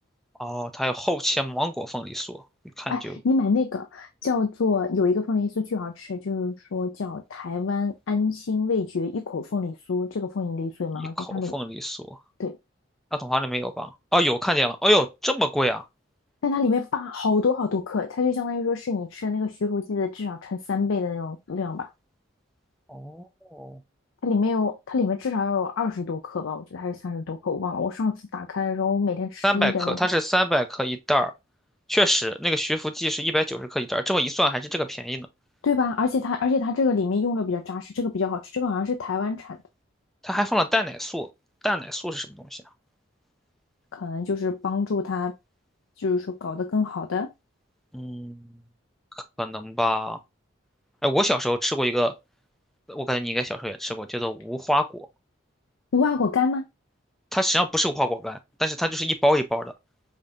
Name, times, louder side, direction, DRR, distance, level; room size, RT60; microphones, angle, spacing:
voice 1, 0.4-2.4 2.8-3.2 11.2-12.1 13.1-15.8 22.9-23.8 29.4-31.3 31.9-35.3 40.2-41.3 41.6-42.6 47.9-48.4 49.4-50.2 51.0-52.1 52.9-55.1 57.3-59.7, equal, ahead, 0.3 m, -25 dB
voice 2, 2.9-11.5 12.4-12.6 16.4-21.9 24.2-30.0 35.6-39.6 43.9-45.3 46.0-47.3 55.9-56.6, left 4 dB, 80° left, 0.5 m, -26 dB
5.1 x 2.7 x 2.4 m
head